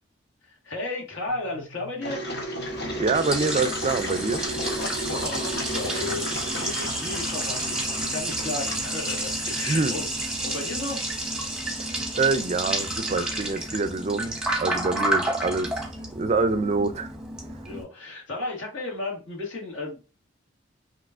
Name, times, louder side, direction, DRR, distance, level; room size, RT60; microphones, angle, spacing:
voice 1, 0.4-2.3 4.9-11.0 17.7-20.0, left 2 dB, 70° left, 1.9 m, -34 dB
sound 1, 1.3-11.1, right 1 dB, 35° left, 2.3 m, -50 dB
Engine, 2.0-9.8, equal, 55° left, 1.0 m, -34 dB
Liquid, 2.7-17.8, right 1 dB, 5° right, 0.8 m, -30 dB
voice 2, 3.0-4.5 9.7-10.0 11.8-15.7 16.1-17.1, right 3 dB, 35° right, 0.4 m, -26 dB
5.4 x 3.0 x 2.5 m
head